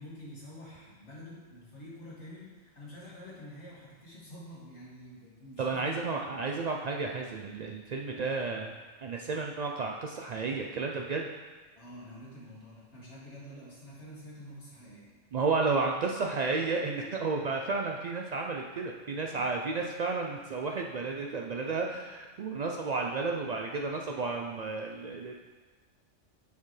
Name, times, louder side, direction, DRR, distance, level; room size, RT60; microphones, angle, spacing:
voice 1, 0.0-6.3 11.8-15.1 19.3-19.4, left 1 dB, 65° left, -7 dB, 2.3 m, -48 dB
voice 2, 5.6-8.7 9.0-11.3 15.3-25.3, right 4 dB, 85° right, 1 dB, 0.3 m, -32 dB
6.8 x 6.6 x 3.2 m, 1.3 s
omnidirectional pair, 1.3 m